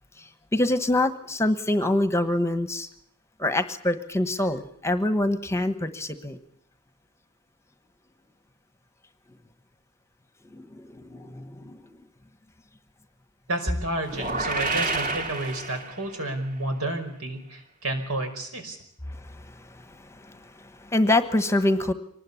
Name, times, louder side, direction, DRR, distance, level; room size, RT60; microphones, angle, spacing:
voice 1, 0.2-2.9 3.4-6.4 10.5-12.0 19.1-21.9, left 1 dB, 15° left, 11 dB, 1.2 m, -26 dB
voice 2, 13.5-18.8, right 2 dB, 75° right, 6 dB, 5.3 m, -31 dB
sound 1, 14.1-16.3, right 3 dB, 35° right, 2.5 m, -29 dB
24.5 x 20.0 x 8.4 m, 0.64 s
head